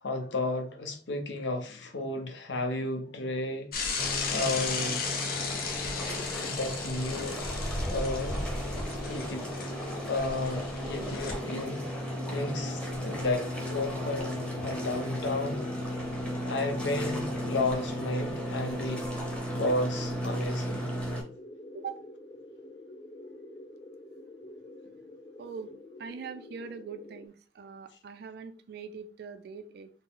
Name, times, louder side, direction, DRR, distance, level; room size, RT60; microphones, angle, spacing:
voice 1, 0.0-3.7 4.3-5.5 6.0-7.4 7.9-8.4 9.1-9.5 10.1-11.8 12.3-15.6 16.3-19.0 19.5-20.8, left 2 dB, 85° left, 0.8 m, -33 dB
Bicycle / Mechanisms, 3.7-11.3, left 4 dB, 55° left, 0.8 m, -35 dB
sound 1, 4.0-21.2, equal, 5° left, 0.8 m, -35 dB
sound 2, 8.3-27.3, left 2 dB, 25° left, 0.4 m, -49 dB
voice 2, 21.7-22.1 25.4-29.9, right 6 dB, 60° right, 0.4 m, -42 dB
3.9 x 2.1 x 3.8 m
head